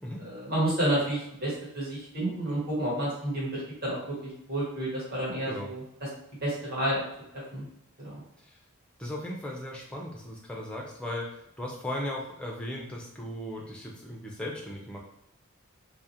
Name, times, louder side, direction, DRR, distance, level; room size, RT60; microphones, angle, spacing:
voice 1, 0.2-3.5 3.8-6.1 6.4-7.0 7.5-7.7 8.0-8.2, right 1 dB, 45° right, -7 dB, 1.1 m, -30 dB
voice 2, 9.0-15.0, left 1 dB, 5° left, -2 dB, 0.3 m, -37 dB
2.3 x 2.0 x 2.7 m, 0.77 s
head